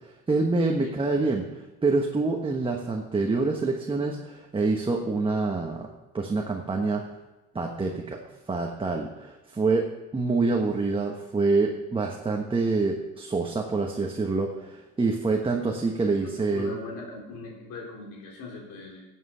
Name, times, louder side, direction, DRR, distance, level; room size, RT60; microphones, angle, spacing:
voice 1, 0.0-7.0 7.5-8.2 8.5-9.9 10.1-16.8, right 3 dB, 15° right, 1 dB, 1.2 m, -26 dB
voice 2, 16.0-19.0, left 3 dB, 80° left, 0 dB, 3.5 m, -40 dB
13.0 x 7.8 x 5.6 m, 1.1 s
cardioid pair, 110°, 30 cm